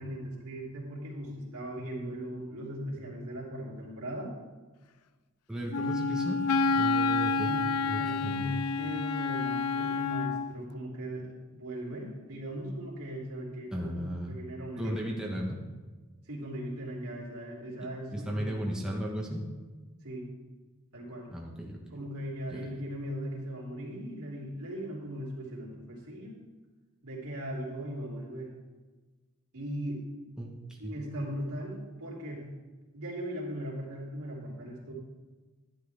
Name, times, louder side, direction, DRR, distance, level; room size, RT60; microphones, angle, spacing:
voice 1, 0.0-4.3 7.1-15.2 16.3-19.0 20.0-20.3 20.9-21.3 21.9-26.4 27.0-28.5 29.5-30.0 30.8-32.5 32.9-34.9, equal, 75° right, -4 dB, 3.4 m, -39 dB
voice 2, 5.5-7.5 7.9-8.6 13.7-14.4 14.8-15.6 18.1-19.4 21.3-21.8 22.5-22.6 30.4-30.5 30.8-30.9, equal, 5° right, -3 dB, 1.3 m, -35 dB
Wind instrument woodwind instrument, 5.7-10.5, left 4 dB, 80° left, 0.5 m, -29 dB
12.0 x 10.5 x 3.6 m, 1.3 s
head